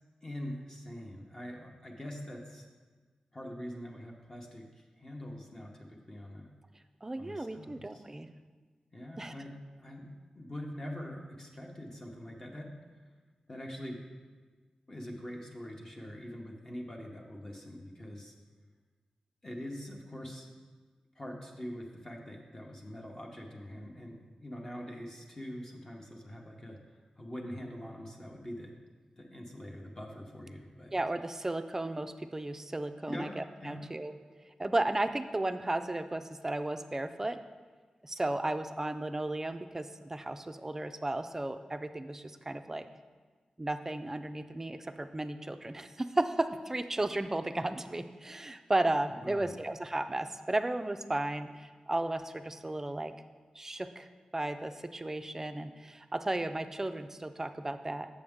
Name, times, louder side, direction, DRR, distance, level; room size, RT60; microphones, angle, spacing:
voice 1, 0.2-2.7 3.3-6.5 7.2-8.0 8.9-12.7 13.5-14.1 14.9-18.3 19.4-20.5 21.2-26.8 27.2-28.7 29.2-30.9 33.1-33.8 49.1-49.6, equal, 25° left, 0 dB, 0.8 m, -44 dB
voice 2, 7.0-8.3 9.2-9.3 30.9-34.1 34.6-37.4 38.0-42.9 43.6-53.1 53.6-54.1 54.3-58.1, right 2 dB, 20° right, 10 dB, 0.4 m, -34 dB
7.7 x 6.6 x 3.6 m, 1.4 s
wide cardioid pair, 105°, 2 cm